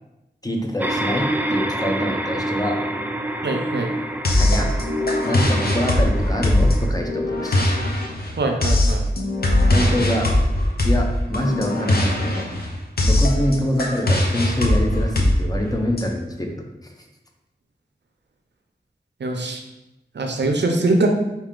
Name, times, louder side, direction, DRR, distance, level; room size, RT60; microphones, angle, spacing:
voice 1, 0.4-2.8 4.3-4.7 5.2-7.6 9.7-10.4 10.8-12.5 13.0-16.6 16.8-16.9, equal, 20° left, 1 dB, 0.7 m, -25 dB
sound 1, 0.8-6.9, right 1 dB, 10° right, 0.4 m, -27 dB
voice 2, 3.4-3.9 8.4-9.0 19.2-19.6 20.1-21.1, right 2 dB, 80° right, 4 dB, 0.6 m, -22 dB
sound 2, 4.2-16.0, left 1 dB, 60° left, 0.7 m, -20 dB
4.8 x 2.8 x 3.7 m, 0.96 s
wide cardioid pair, 55°, 18 cm